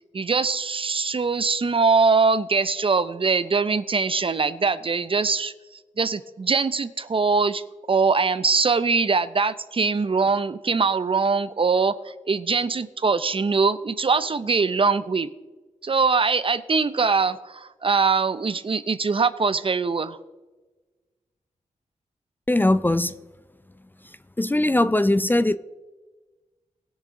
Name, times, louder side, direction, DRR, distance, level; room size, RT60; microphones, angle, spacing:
voice 1, 0.1-5.5 6.0-15.3 15.8-20.2, right 4 dB, 45° right, 0.6 m, -22 dB
voice 2, 22.5-23.1 24.4-25.6, left 1 dB, 15° left, 0.4 m, -20 dB
20.0 x 6.7 x 3.7 m
cardioid pair, 60°, 13 cm